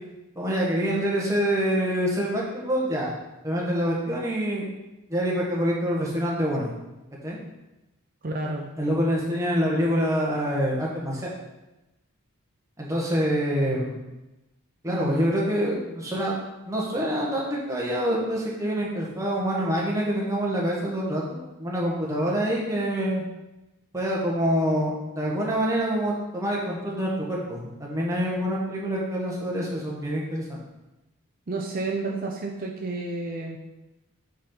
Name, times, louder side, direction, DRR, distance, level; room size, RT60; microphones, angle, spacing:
voice 1, 0.3-3.1 3.4-4.6 5.1-6.7 7.2-7.4 8.8-11.3 12.8-14.0 14.8-16.4 16.7-23.2 23.9-30.6, equal, 15° right, -4 dB, 1.4 m, -26 dB
voice 2, 8.2-8.7 14.9-15.3 31.5-33.6, right 2 dB, 40° right, 1 dB, 0.6 m, -30 dB
8.6 x 3.9 x 4.4 m, 1.0 s
head